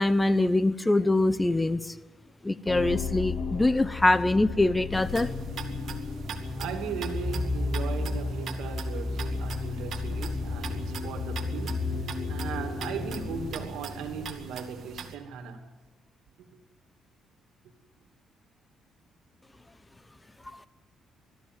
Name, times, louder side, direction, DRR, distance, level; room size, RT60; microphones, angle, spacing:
voice 1, 0.0-1.8 2.4-5.3, left 2 dB, 15° left, 0.9 m, -23 dB
sound 1, 2.7-14.5, left 3 dB, 85° left, 3.5 m, -33 dB
sound 2, 4.9-15.2, right 6 dB, 65° right, 2.1 m, -42 dB
voice 2, 6.6-15.6, right 7 dB, 85° right, 2.5 m, -38 dB
21.0 x 13.5 x 9.3 m
cardioid pair, 90°, 0 cm